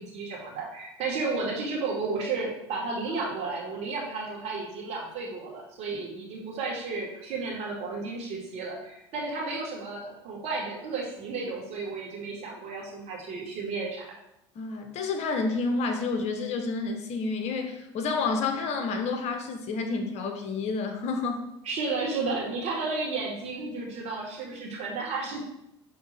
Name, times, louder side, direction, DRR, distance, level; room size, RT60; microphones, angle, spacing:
voice 1, 0.0-14.0 21.6-25.4, right 3 dB, 55° right, -3 dB, 2.3 m, -33 dB
voice 2, 14.5-21.4, left 4 dB, 55° left, 5 dB, 1.1 m, -29 dB
5.8 x 3.7 x 4.3 m, 0.84 s
hypercardioid pair, 75°, 14 cm